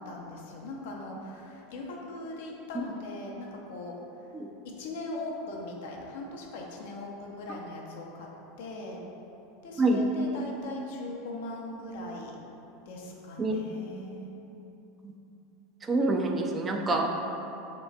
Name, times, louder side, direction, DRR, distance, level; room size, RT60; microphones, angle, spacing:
voice 1, 0.0-4.0 4.6-8.3 8.6-9.0 9.6-12.4 12.9-14.3, left 2 dB, 65° left, -1 dB, 0.6 m, -40 dB
voice 2, 15.9-17.1, right 2 dB, 25° right, 2 dB, 0.4 m, -26 dB
3.1 x 2.9 x 4.6 m, 3.0 s
figure-of-eight pair, 85°, 0 cm